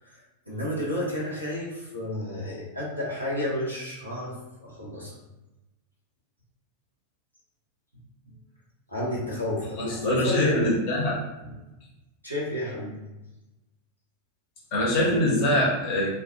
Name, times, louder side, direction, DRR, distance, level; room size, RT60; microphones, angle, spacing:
voice 1, 0.5-5.1 8.9-10.8 12.2-12.9, left 1 dB, 90° left, -7 dB, 0.8 m, -31 dB
voice 2, 9.8-11.1 14.7-16.1, left 1 dB, 45° left, -4 dB, 0.8 m, -23 dB
2.2 x 2.2 x 2.8 m, 1.0 s
figure-of-eight pair, 90°, 0 cm